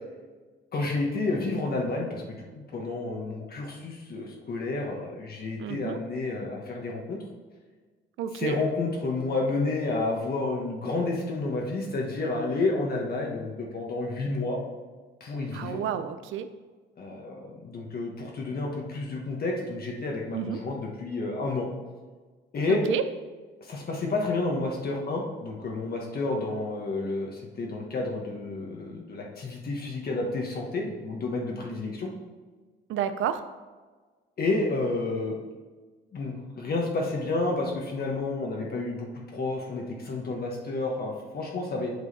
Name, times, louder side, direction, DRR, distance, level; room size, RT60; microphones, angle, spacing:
voice 1, 0.7-2.2 2.5-7.2 8.4-14.6 15.2-15.8 17.0-21.7 22.5-22.8 23.6-32.1 34.4-35.4 36.1-41.9, left 3 dB, 50° left, 0 dB, 1.3 m, -30 dB
voice 2, 5.6-6.0 8.2-8.6 15.5-16.5 20.3-20.6 22.7-23.0 32.9-33.4, right 9 dB, 85° right, 10 dB, 0.6 m, -30 dB
8.2 x 4.8 x 4.1 m, 1.4 s
cardioid pair, 90°, 20 cm